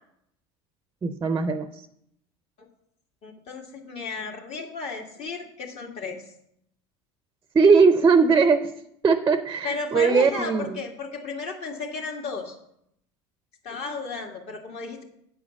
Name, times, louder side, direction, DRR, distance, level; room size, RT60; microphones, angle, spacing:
voice 1, 1.0-1.7 7.5-8.7 9.0-10.8, right 5 dB, 20° right, 10 dB, 0.5 m, -19 dB
voice 2, 3.2-6.2 9.6-12.6 13.6-15.0, left 4 dB, 50° left, 2 dB, 2.0 m, -34 dB
9.0 x 5.0 x 7.0 m, 0.76 s
supercardioid pair, 110°, 14 cm